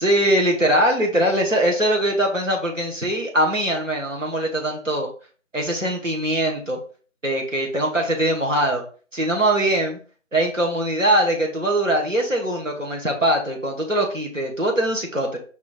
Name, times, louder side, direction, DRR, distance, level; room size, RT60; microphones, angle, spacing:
voice 1, 0.0-5.1 5.5-6.8 7.2-8.8 9.1-10.0 10.3-15.4, right 1 dB, 70° right, 0 dB, 1.6 m, -22 dB
5.2 x 2.6 x 3.5 m, 0.40 s
figure-of-eight pair, 180°, 40 cm